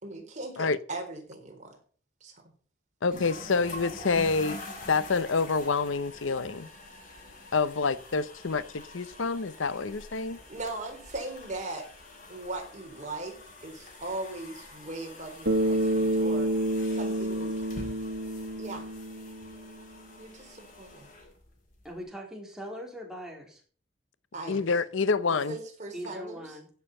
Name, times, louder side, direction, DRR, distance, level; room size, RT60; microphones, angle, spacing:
voice 1, 0.0-1.8 2.2-2.5 10.5-11.9 12.3-16.5 16.9-17.5 18.6-18.8 20.2-21.1 24.3-24.7 25.5-26.6, right 2 dB, 40° right, 4.1 m, -39 dB
voice 2, 3.0-4.6 4.9-6.7 7.5-10.4 24.5-25.6, left 4 dB, 80° left, 0.7 m, -27 dB
sound 1, 3.1-22.0, left 2 dB, 45° left, 4.7 m, -46 dB
Bass guitar, 15.5-19.8, right 1 dB, 85° right, 1.7 m, -29 dB
voice 3, 21.8-23.6 25.9-26.7, equal, 5° right, 3.9 m, -40 dB
16.0 x 7.4 x 5.5 m
head